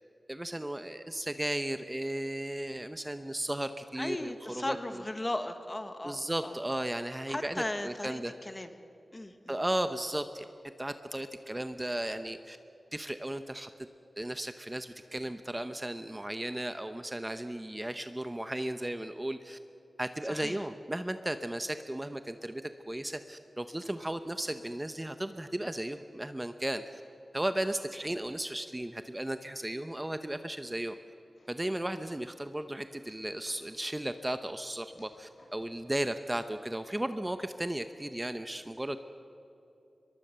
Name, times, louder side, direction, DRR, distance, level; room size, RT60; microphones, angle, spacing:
voice 1, 0.3-5.0 6.0-8.3 9.5-10.4 10.8-12.6 12.9-13.7 14.2-19.6 20.0-27.0 27.3-31.0 31.5-39.0, right 1 dB, 15° right, 9 dB, 0.8 m, -35 dB
voice 2, 3.9-6.5 7.3-8.7 9.1-9.6 20.3-20.6, left 1 dB, 25° left, 8 dB, 1.5 m, -37 dB
sound 1, 31.3-32.1 33.0-34.0 34.9-35.8, left 1 dB, 70° left, 7.0 m, -62 dB
23.0 x 23.0 x 6.8 m, 2.8 s
wide cardioid pair, 100°, 0 cm